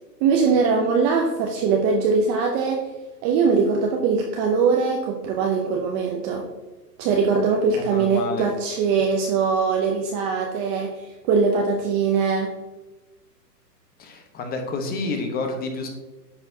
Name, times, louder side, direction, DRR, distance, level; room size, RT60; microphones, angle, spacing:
voice 1, 0.2-2.9 3.2-6.5 7.0-12.5, right 5 dB, 20° right, 1 dB, 0.5 m, -21 dB
voice 2, 7.9-8.5 14.0-15.9, left 3 dB, 20° left, 4 dB, 1.0 m, -29 dB
9.7 x 6.0 x 2.7 m, 1.2 s
hypercardioid pair, 130°, 49 cm